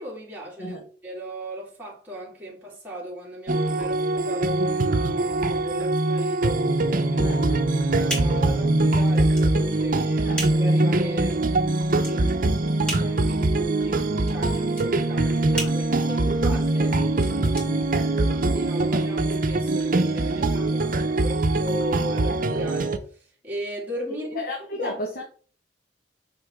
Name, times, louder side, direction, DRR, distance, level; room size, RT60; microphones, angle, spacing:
voice 1, 0.0-6.7 7.1-7.4 7.8-12.6 13.0-17.6 18.3-24.4 24.7-25.0, equal, 10° right, 2.3 m, -37 dB
sound 1, 3.5-23.0, right 2 dB, 50° right, 0.7 m, -23 dB
voice 2, 7.2-7.6 10.2-10.4 17.3-18.2 24.3-25.2, left 1 dB, 55° left, 1.4 m, -34 dB
sound 2, 7.2-18.5, right 1 dB, 5° left, 2.7 m, -38 dB
6.8 x 5.9 x 3.6 m
head